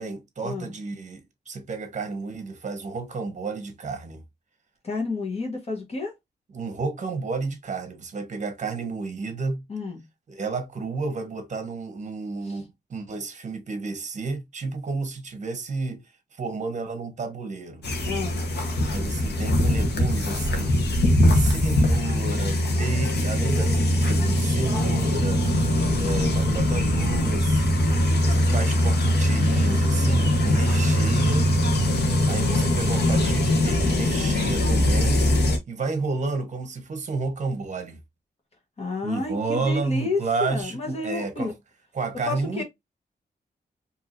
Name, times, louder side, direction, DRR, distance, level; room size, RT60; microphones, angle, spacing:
voice 1, 0.0-4.2 6.5-9.6 10.3-16.0 16.3-17.9 18.9-20.8 21.3-25.4 26.0-27.9 28.3-31.5 32.3-35.2 35.7-38.0 39.0-41.5 41.9-42.6, right 4 dB, 45° right, 1.0 m, -31 dB
voice 2, 4.8-6.1 9.7-10.0 12.4-12.6 18.0-18.4 38.8-41.5 42.3-42.6, left 3 dB, 35° left, 1.3 m, -30 dB
sound 1, 17.8-35.6, left 1 dB, 80° left, 1.1 m, -22 dB
4.6 x 2.8 x 2.6 m
wide cardioid pair, 160°, 17 cm